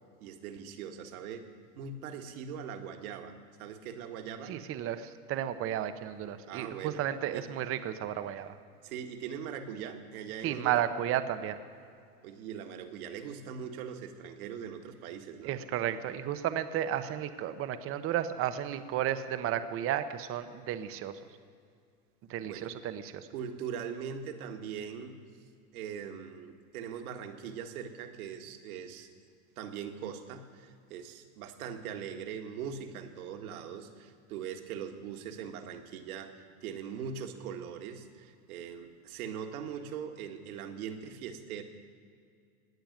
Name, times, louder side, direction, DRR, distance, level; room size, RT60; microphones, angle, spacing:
voice 1, 0.2-1.4 1.8-4.5 6.5-7.0 7.3-7.4 8.8-10.8 12.2-15.5 22.4-22.7 23.3-25.2 25.7-29.1 29.6-41.6, right 7 dB, 65° right, 6 dB, 1.9 m, -41 dB
voice 2, 4.5-8.5 10.4-11.6 15.4-21.2 22.3-23.3, right 11 dB, 30° right, 11 dB, 0.8 m, -33 dB
18.5 x 6.9 x 9.3 m, 2.3 s
hypercardioid pair, 115°, 47 cm